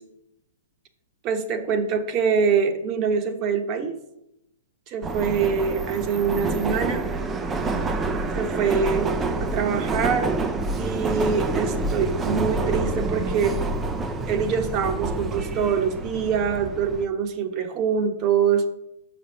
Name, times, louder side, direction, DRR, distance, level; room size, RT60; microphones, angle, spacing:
voice 1, 1.2-4.0 4.9-7.1 8.3-9.1 9.4-10.3 10.8-13.6 14.3-18.6, right 6 dB, 30° right, 7 dB, 1.0 m, -24 dB
Subway metro underground, 5.0-17.0, right 3 dB, 15° right, 0.5 m, -27 dB
6.4 x 5.3 x 6.8 m, 0.84 s
hypercardioid pair, 145°, 0 cm